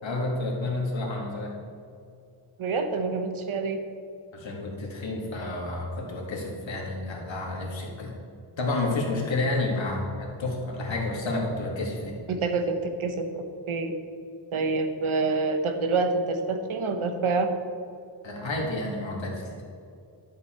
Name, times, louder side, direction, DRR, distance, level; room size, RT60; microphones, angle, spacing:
voice 1, 0.0-1.6 4.3-8.1 8.6-12.2 18.2-19.4, left 2 dB, 65° left, -2 dB, 2.1 m, -30 dB
voice 2, 2.6-3.8 12.3-13.9 14.5-17.5, right 3 dB, 85° right, 6 dB, 1.1 m, -27 dB
11.5 x 7.2 x 4.4 m, 2.5 s
wide cardioid pair, 140°, 48 cm